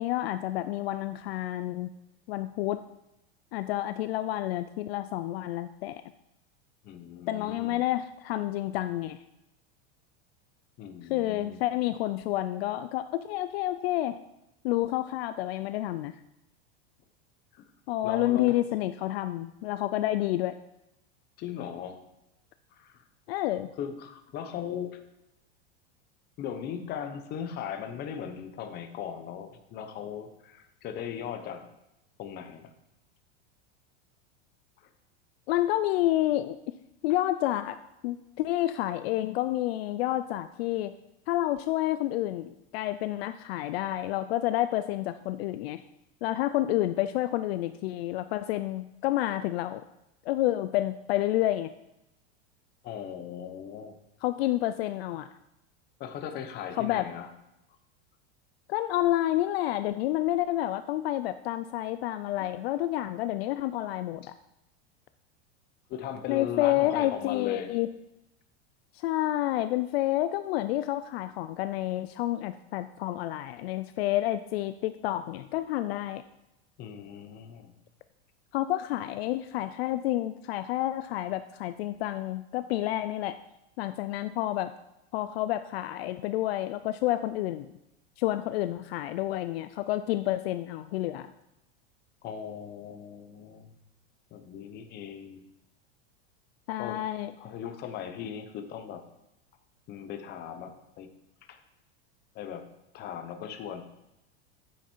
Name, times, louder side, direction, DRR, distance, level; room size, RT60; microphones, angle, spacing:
voice 1, 0.0-1.9 2.3-2.8 3.5-6.0 7.3-9.2 11.1-14.2 14.6-16.1 17.9-20.5 23.3-23.7 35.5-36.6 37.0-37.8 38.0-40.9 41.3-45.8 46.2-49.8 50.3-51.7 54.2-55.3 56.8-57.1 58.7-64.3 66.3-67.9 68.9-76.2 78.5-83.4 83.8-84.7 85.1-87.7 88.2-91.3 96.7-97.3, left 15 dB, 65° left, 12 dB, 0.5 m, -29 dB
voice 2, 6.8-7.8 10.8-11.6 17.5-17.7 18.0-18.6 21.4-22.0 22.7-23.0 23.8-25.0 26.4-31.6 32.2-32.6 34.8-34.9 52.8-54.0 56.0-57.3 62.4-62.5 65.9-67.7 76.8-77.7 92.2-93.7 94.3-95.4 96.8-97.0 97.4-99.0 99.9-101.1 101.5-101.6 102.3-102.6 102.9-103.8, left 8 dB, 30° left, 7 dB, 0.9 m, -38 dB
9.0 x 7.3 x 4.5 m, 0.88 s
supercardioid pair, 160°, 33 cm